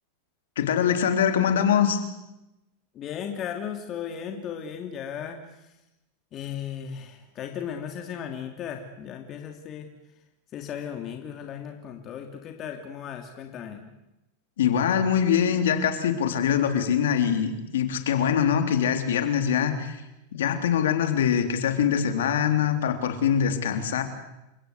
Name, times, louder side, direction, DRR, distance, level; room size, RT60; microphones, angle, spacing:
voice 1, 0.6-2.0 14.6-20.0 20.3-24.0, left 8 dB, 85° left, 7 dB, 3.5 m, -23 dB
voice 2, 2.9-5.7 6.3-9.9 10.5-13.9, left 8 dB, 35° left, 4 dB, 2.8 m, -36 dB
28.5 x 17.0 x 8.3 m, 0.92 s
supercardioid pair, 130°, 0 cm